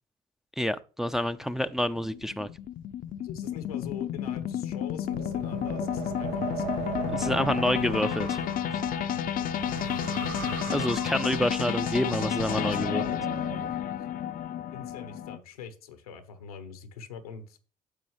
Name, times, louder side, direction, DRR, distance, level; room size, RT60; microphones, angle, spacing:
voice 1, 0.6-2.5 7.1-8.4 10.7-13.0, equal, ahead, 0.5 m, -28 dB
sound 1, 1.1-15.4, left 10 dB, 50° left, 0.6 m, -31 dB
voice 2, 3.2-6.6 7.0-7.4 12.5-13.2 14.7-17.6, left 7 dB, 90° left, 1.0 m, -43 dB
Wind, 5.0-13.7, right 7 dB, 70° right, 1.0 m, -38 dB
9.8 x 6.9 x 3.1 m
hypercardioid pair, 55°, 18 cm